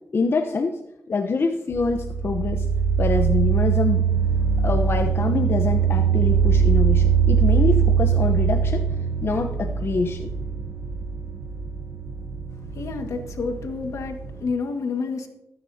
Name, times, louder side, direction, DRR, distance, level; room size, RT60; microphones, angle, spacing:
voice 1, 0.1-0.8 1.1-2.7 3.0-4.0 4.6-8.8 9.2-10.3, left 4 dB, 45° left, 4 dB, 0.9 m, -25 dB
sound 1, 1.7-14.5, right 7 dB, 45° right, 0.9 m, -22 dB
voice 2, 12.7-15.3, left 4 dB, 70° left, 4 dB, 1.8 m, -29 dB
20.0 x 9.7 x 2.8 m, 0.94 s
cardioid pair, 70°, 5 cm